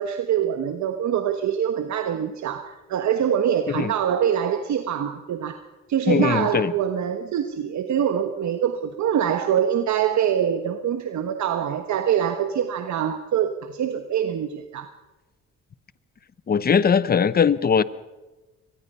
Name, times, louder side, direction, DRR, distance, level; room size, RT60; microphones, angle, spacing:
voice 1, 0.0-5.6 5.9-14.9, right 9 dB, 65° right, 7 dB, 1.3 m, -24 dB
voice 2, 6.1-6.7 16.5-17.8, left 6 dB, 30° left, 17 dB, 0.8 m, -20 dB
24.0 x 19.5 x 5.6 m, 1.1 s
cardioid pair, 90°, 30 cm